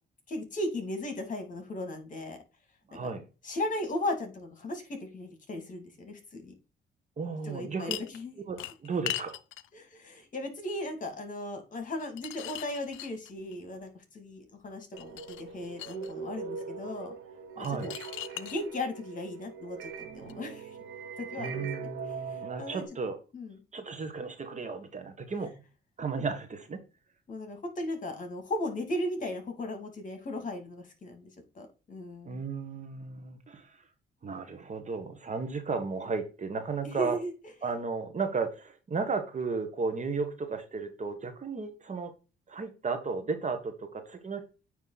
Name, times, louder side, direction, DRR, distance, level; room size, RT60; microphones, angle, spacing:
voice 1, 0.3-2.4 2.9-3.0 3.4-6.5 7.4-8.4 9.7-17.1 17.6-17.9 18.3-19.9 20.1-20.8 21.2-21.9 22.3-22.8 23.3-23.6 27.3-31.3 31.5-32.4 36.8-37.3, left 1 dB, 40° left, 6 dB, 2.3 m, -36 dB
voice 2, 2.9-3.2 7.2-8.0 8.5-9.4 17.6-17.9 21.4-23.2 23.7-25.6 26.0-26.8 32.2-33.7 34.2-37.2 37.6-42.1 42.5-44.4, right 4 dB, 35° right, 8 dB, 1.2 m, -34 dB
sound 1, 7.9-8.2 8.6-9.7 12.0-13.6 15.0-16.1 17.6-18.6 20.3-20.4, left 15 dB, 90° left, 0.4 m, -39 dB
sound 2, 14.9-22.9, right 5 dB, 85° right, 1.0 m, -41 dB
9.1 x 3.1 x 3.9 m, 0.32 s
cardioid pair, 90°, 20 cm